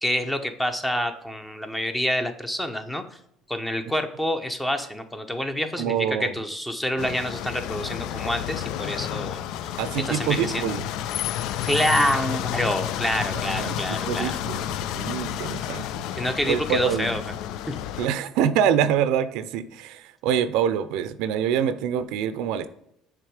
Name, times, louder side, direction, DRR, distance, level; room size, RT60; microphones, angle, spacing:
voice 1, 0.0-3.0 3.5-9.4 10.0-10.7 11.7-14.4 16.2-17.2 17.7-17.8, equal, 10° left, 0.8 m, -27 dB
voice 2, 5.8-6.3 9.8-10.9 13.3-15.9 16.1-17.1 18.0-22.7, right 9 dB, 75° right, 0.5 m, -26 dB
sound 1, 7.0-18.1, left 11 dB, 70° left, 0.3 m, -31 dB
6.6 x 3.6 x 4.8 m
supercardioid pair, 100°, 0 cm